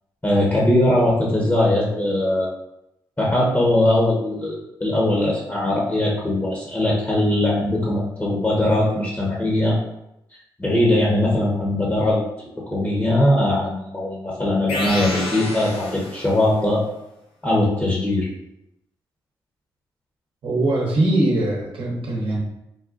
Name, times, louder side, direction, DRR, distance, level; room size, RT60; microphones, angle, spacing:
voice 1, 0.2-2.5 3.2-9.8 10.6-12.2 12.7-16.8 17.4-18.3, left 1 dB, 20° left, -4 dB, 1.0 m, -20 dB
sound 1, 14.7-16.6, left 1 dB, 80° left, 0.6 m, -29 dB
voice 2, 20.4-22.4, right 1 dB, 60° right, -2 dB, 0.9 m, -21 dB
3.9 x 2.2 x 2.5 m, 0.83 s
hypercardioid pair, 45°, 10 cm